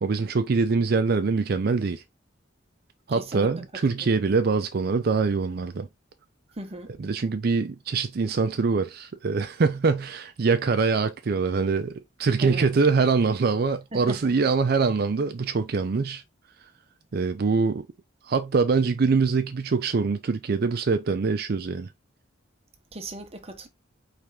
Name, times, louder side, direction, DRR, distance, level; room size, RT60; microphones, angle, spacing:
voice 1, 0.0-2.0 3.1-5.9 7.0-16.2 17.1-17.9 18.2-21.9, right 4 dB, 50° right, 0.4 m, -24 dB
voice 2, 3.1-3.5 4.0-4.1 6.6-6.9 12.4-12.7 13.9-14.3 22.9-23.7, right 2 dB, 30° right, 1.0 m, -38 dB
4.5 x 3.3 x 3.5 m
head